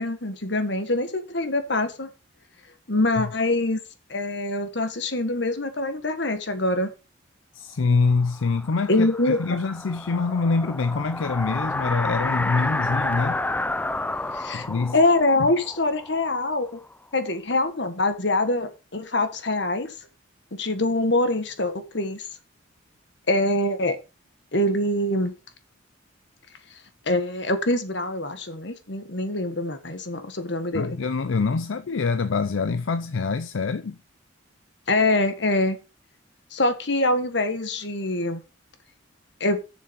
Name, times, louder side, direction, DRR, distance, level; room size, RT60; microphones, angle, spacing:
voice 1, 0.0-2.1 2.9-3.8 4.1-6.9 8.9-9.6 14.3-14.7 14.9-16.7 17.1-19.9 20.5-22.2 23.3-24.0 24.5-25.3 27.1-31.0 34.9-35.8 36.5-38.4 39.4-39.6, left 2 dB, 60° left, 1.5 m, -24 dB
voice 2, 7.5-13.4 14.5-15.0 15.4-15.5 30.7-34.0, left 4 dB, 75° left, 0.5 m, -25 dB
sound 1, 8.2-16.9, left 2 dB, 10° left, 0.4 m, -30 dB
7.4 x 7.0 x 5.3 m
head